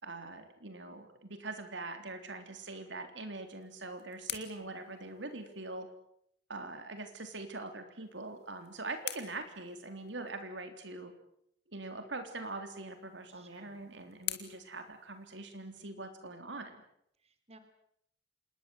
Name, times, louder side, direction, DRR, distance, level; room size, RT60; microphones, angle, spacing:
voice 1, 0.0-5.9 6.5-11.1 11.7-16.8, right 2 dB, 75° right, 7 dB, 3.7 m, -43 dB
sound 1, 3.4-5.8 8.0-10.4 12.6-15.8, left 12 dB, 60° left, 2.7 m, -47 dB
voice 2, 4.3-4.7 13.3-13.8 17.2-17.6, right 2 dB, 35° right, 8 dB, 3.3 m, -60 dB
27.0 x 21.0 x 8.0 m, 0.73 s
head